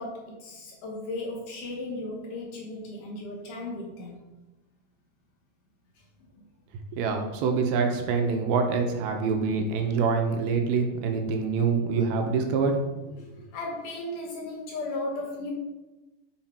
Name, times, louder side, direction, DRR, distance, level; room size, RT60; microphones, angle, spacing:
voice 1, 0.0-4.2 6.4-6.5 13.5-15.5, left 2 dB, 65° left, -1 dB, 2.3 m, -35 dB
voice 2, 6.9-12.7 13.1-13.2, right 5 dB, 80° right, 4 dB, 2.6 m, -25 dB
7.4 x 5.7 x 4.4 m, 1.1 s
omnidirectional pair, 4.4 m